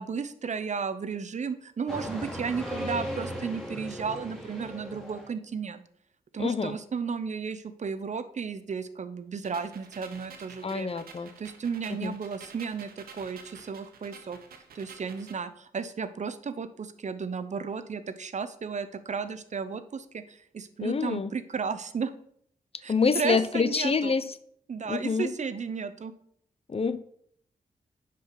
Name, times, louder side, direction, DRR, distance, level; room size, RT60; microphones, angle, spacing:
voice 1, 0.0-5.8 6.3-11.0 11.4-14.4 14.7-22.1 22.8-24.1 24.7-26.1, right 5 dB, 50° right, 13 dB, 0.8 m, -34 dB
sound 1, 1.9-5.3, equal, 5° left, 3.3 m, -37 dB
voice 2, 6.4-6.8 10.6-11.3 11.9-12.1 20.8-21.3 22.9-24.3 24.9-25.3 26.7-27.0, left 5 dB, 40° left, 13 dB, 0.8 m, -27 dB
sound 2, 9.4-15.4, right 6 dB, 85° right, 1.3 m, -50 dB
9.7 x 5.0 x 5.9 m, 0.65 s
cardioid pair, 55°, 15 cm